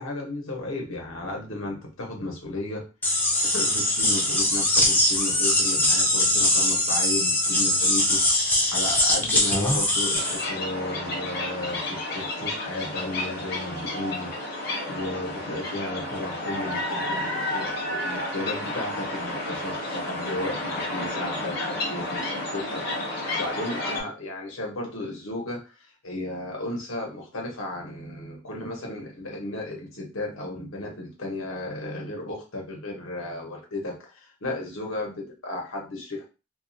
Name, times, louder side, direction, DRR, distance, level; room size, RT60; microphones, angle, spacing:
voice 1, 0.0-2.8 3.5-8.2 8.7-25.7 26.0-36.2, left 2 dB, 80° left, 0 dB, 0.9 m, -34 dB
sound 1, 3.0-10.4, left 1 dB, 10° left, 0.3 m, -22 dB
sound 2, 10.1-24.0, left 1 dB, 45° left, 0.7 m, -31 dB
2.3 x 2.1 x 2.6 m, 0.31 s
head